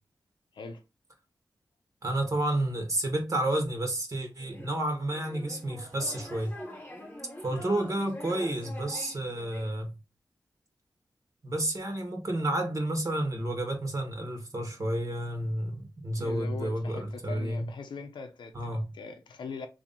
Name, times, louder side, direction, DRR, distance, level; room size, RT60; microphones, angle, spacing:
voice 1, 2.0-6.6 7.4-10.0 11.4-17.7 18.5-18.9, right 1 dB, 45° right, 1.1 m, -30 dB
sound 1, 4.4-9.7, left 1 dB, 25° left, 1.0 m, -45 dB
voice 2, 16.2-19.7, left 4 dB, 90° left, 0.5 m, -41 dB
2.9 x 2.6 x 3.9 m
cardioid pair, 65°, 8 cm